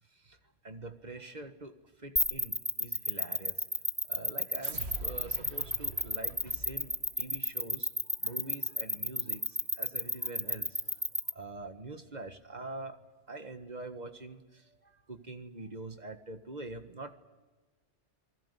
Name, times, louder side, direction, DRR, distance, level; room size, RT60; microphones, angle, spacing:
voice 1, 0.6-1.7 2.0-3.6 4.1-7.9 8.2-11.0 11.4-13.0 13.3-17.1, right 2 dB, 35° right, 8 dB, 1.7 m, -44 dB
sound 1, 2.2-11.3, equal, ahead, 0.9 m, -30 dB
sound 2, 4.6-7.3, right 3 dB, 60° right, 1.9 m, -45 dB
28.0 x 20.0 x 8.4 m, 1.2 s
omnidirectional pair, 1.2 m